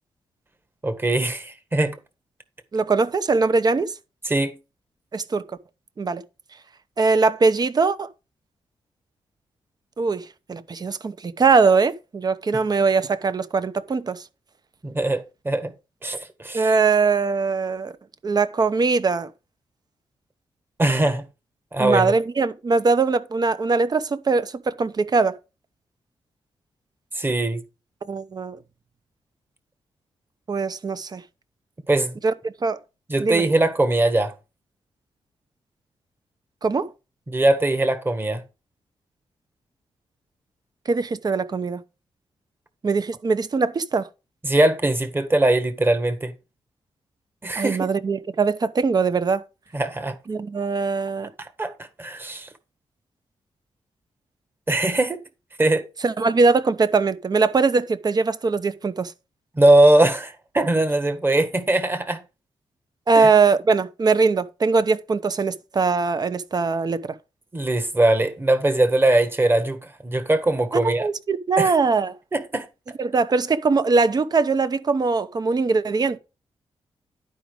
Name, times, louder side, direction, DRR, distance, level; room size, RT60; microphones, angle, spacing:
voice 1, 0.8-2.0 4.2-4.6 14.8-15.7 16.0-16.7 20.8-21.2 21.7-22.1 27.1-27.6 31.9-32.2 33.1-34.3 37.3-38.4 44.4-46.3 47.4-47.8 49.7-50.2 51.4-51.7 52.0-52.5 54.7-55.2 55.6-55.8 59.6-62.2 63.1-63.3 67.5-71.1 71.6-71.7 72.3-72.7, right 2 dB, 20° right, 1.6 m, -21 dB
voice 2, 2.7-3.9 5.1-5.4 6.0-6.2 7.0-8.1 10.0-14.2 16.5-17.9 18.2-19.3 21.8-25.4 28.0-28.6 30.5-31.2 32.2-32.8 33.2-33.4 36.6-36.9 40.8-41.8 42.8-44.1 47.5-49.4 50.3-51.3 56.0-59.1 63.1-67.2 70.8-72.2 73.0-76.2, right 4 dB, 40° right, 0.9 m, -21 dB
11.5 x 5.2 x 4.9 m
cardioid pair, 100°, 11 cm